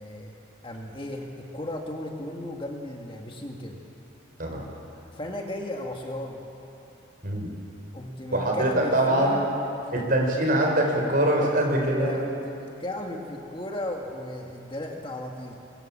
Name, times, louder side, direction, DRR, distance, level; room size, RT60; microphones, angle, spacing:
voice 1, 0.0-3.8 5.1-6.4 7.9-9.4 9.9-10.1 11.4-11.5 12.0-15.6, left 1 dB, 25° left, 1 dB, 1.8 m, -35 dB
voice 2, 8.3-9.5 9.9-12.1, right 1 dB, 45° right, 0 dB, 4.8 m, -23 dB
24.5 x 23.5 x 7.5 m, 2.8 s
head